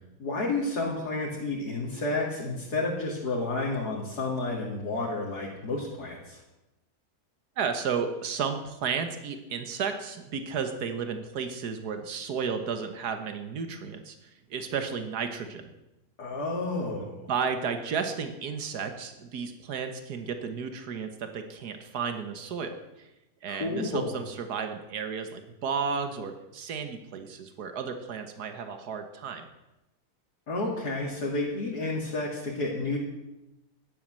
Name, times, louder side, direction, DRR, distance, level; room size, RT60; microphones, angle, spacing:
voice 1, 0.2-6.4 16.2-17.3 23.5-24.2 30.5-33.0, left 2 dB, 85° left, -3 dB, 2.9 m, -31 dB
voice 2, 7.6-15.7 17.0-23.1 23.4-29.5, right 6 dB, 90° right, 8 dB, 1.7 m, -33 dB
12.0 x 10.5 x 7.5 m, 0.95 s
omnidirectional pair, 1.6 m